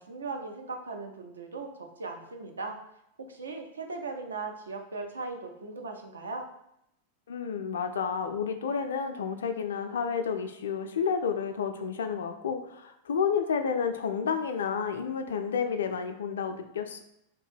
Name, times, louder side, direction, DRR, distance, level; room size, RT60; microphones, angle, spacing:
voice 1, 0.0-2.8 3.2-6.5, right 3 dB, 75° right, 3 dB, 0.4 m, -38 dB
voice 2, 7.3-17.0, left 6 dB, 65° left, 7 dB, 0.3 m, -30 dB
2.9 x 2.1 x 3.2 m, 0.79 s
figure-of-eight pair, 90°, 0 cm